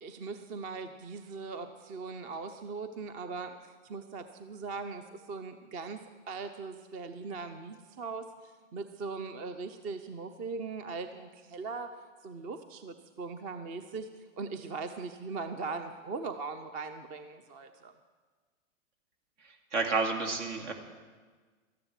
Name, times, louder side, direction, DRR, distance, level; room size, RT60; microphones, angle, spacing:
voice 1, 0.0-11.9 12.2-17.9, right 4 dB, 20° right, 9 dB, 0.5 m, -40 dB
voice 2, 19.7-20.7, right 4 dB, 65° right, 3 dB, 2.5 m, -30 dB
13.5 x 10.5 x 7.4 m, 1.5 s
hypercardioid pair, 130°, 39 cm